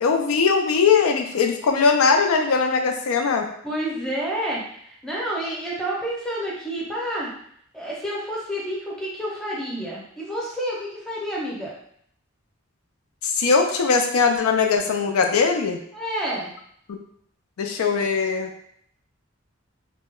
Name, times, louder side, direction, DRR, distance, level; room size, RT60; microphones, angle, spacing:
voice 1, 0.0-3.4 13.2-15.8 16.9-17.0 17.6-18.5, left 5 dB, 90° left, 4 dB, 0.4 m, -20 dB
voice 2, 3.6-7.3 7.7-11.7 15.9-16.5, right 1 dB, 5° left, -5 dB, 0.7 m, -29 dB
2.2 x 2.1 x 3.6 m, 0.67 s
head